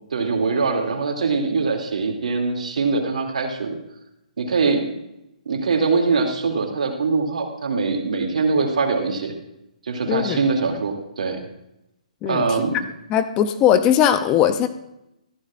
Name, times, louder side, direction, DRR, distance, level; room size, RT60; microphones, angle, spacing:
voice 1, 0.1-3.8 4.4-4.9 5.5-9.3 9.8-11.4 12.3-12.8, right 4 dB, 70° right, 3 dB, 2.5 m, -22 dB
voice 2, 10.1-10.4 12.2-12.6 13.1-14.7, left 9 dB, 20° left, 10 dB, 0.5 m, -19 dB
14.5 x 13.0 x 2.5 m, 0.86 s
hypercardioid pair, 155°, 4 cm